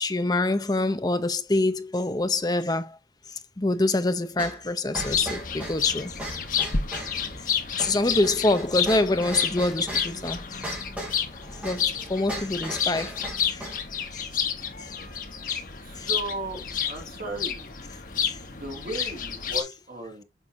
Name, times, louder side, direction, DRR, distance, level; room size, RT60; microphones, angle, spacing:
voice 1, 0.0-3.0 3.6-6.1 7.4-7.5 7.8-10.4 11.6-13.2 13.5-13.7 14.1-14.2 14.8-14.9 16.0-16.1 18.2-18.4, left 2 dB, 20° left, 0.6 m, -25 dB
sound 1, 4.4-13.9, right 1 dB, 10° right, 2.7 m, -38 dB
sound 2, 5.0-19.6, left 7 dB, 50° left, 1.2 m, -30 dB
voice 2, 15.8-17.7 18.5-20.2, right 2 dB, 50° right, 2.3 m, -36 dB
7.0 x 5.4 x 2.7 m
head